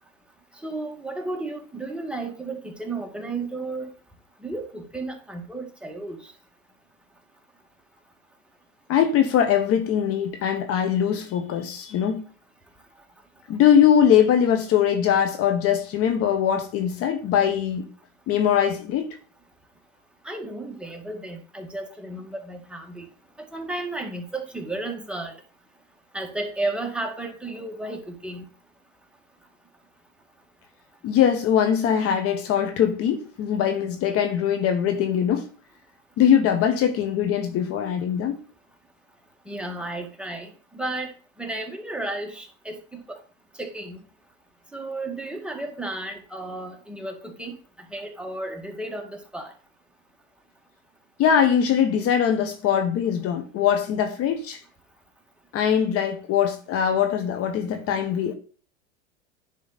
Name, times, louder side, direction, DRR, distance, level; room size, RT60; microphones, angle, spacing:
voice 1, 0.6-3.9 4.4-6.3 20.2-23.1 23.5-25.3 26.1-28.4 39.5-41.1 41.4-43.2 43.6-44.0 44.7-47.5 47.9-49.5, right 2 dB, 5° right, 2.0 m, -33 dB
voice 2, 8.9-12.2 13.5-17.9 18.3-19.2 31.0-35.5 36.2-38.4 51.2-54.6 55.5-58.4, left 8 dB, 45° left, 1.3 m, -21 dB
10.5 x 5.2 x 4.1 m
hypercardioid pair, 105°, 34 cm